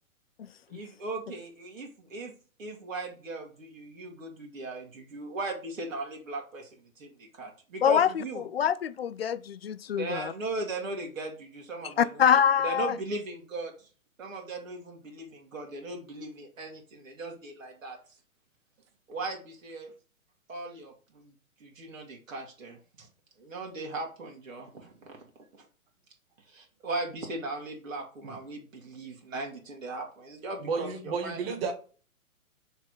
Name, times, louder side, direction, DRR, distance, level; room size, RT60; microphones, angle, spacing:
voice 1, 0.7-2.3 2.6-8.4 9.9-12.2 12.6-13.9 14.2-18.0 19.1-19.9 20.5-21.3 21.6-23.1 23.4-25.3 25.5-25.7 26.4-31.5, right 2 dB, 60° right, 2.1 m, -38 dB
voice 2, 8.4-10.3 12.0-12.9, left 8 dB, 45° left, 0.4 m, -24 dB
voice 3, 30.7-31.7, right 4 dB, 40° right, 1.4 m, -32 dB
5.8 x 3.6 x 4.7 m
figure-of-eight pair, 130°, 43 cm